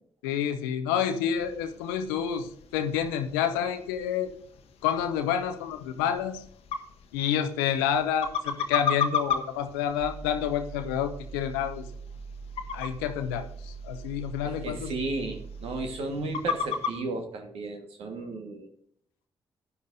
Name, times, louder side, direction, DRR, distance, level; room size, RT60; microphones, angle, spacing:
voice 1, 0.2-4.3 4.8-6.4 7.1-11.9 12.7-14.9, left 9 dB, 85° left, 7 dB, 0.6 m, -29 dB
sound 1, 1.3-17.0, left 6 dB, 70° left, 1.0 m, -36 dB
sound 2, 10.0-15.9, right 5 dB, 15° left, 1.1 m, -42 dB
voice 2, 14.4-18.7, right 2 dB, 70° right, 4 dB, 1.6 m, -34 dB
15.0 x 9.6 x 2.7 m, 0.65 s
hypercardioid pair, 40°, 11 cm